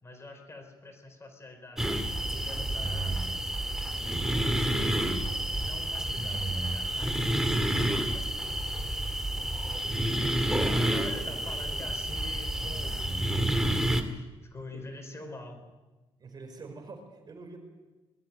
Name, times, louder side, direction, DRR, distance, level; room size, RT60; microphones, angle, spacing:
voice 1, 0.0-3.3 3.9-5.0 5.6-8.6 10.7-15.7, left 2 dB, 25° left, 5 dB, 4.2 m, -46 dB
sound 1, 1.8-14.0, right 1 dB, 5° right, 2.1 m, -29 dB
voice 2, 9.8-11.9 14.7-14.8 16.2-17.6, right 3 dB, 40° right, 5 dB, 5.1 m, -45 dB
21.5 x 13.5 x 9.6 m, 1.2 s
cardioid pair, 100°, 10 cm